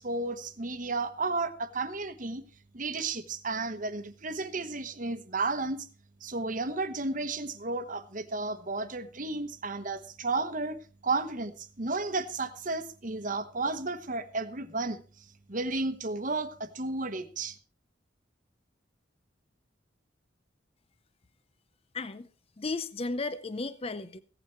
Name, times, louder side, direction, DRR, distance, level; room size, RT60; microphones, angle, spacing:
voice 1, 0.0-2.4 2.7-5.9 6.2-10.8 11.0-17.6, right 3 dB, 40° right, 1.1 m, -33 dB
voice 2, 21.9-22.3 22.6-24.2, left 3 dB, 30° left, 0.6 m, -34 dB
16.0 x 8.8 x 4.5 m
head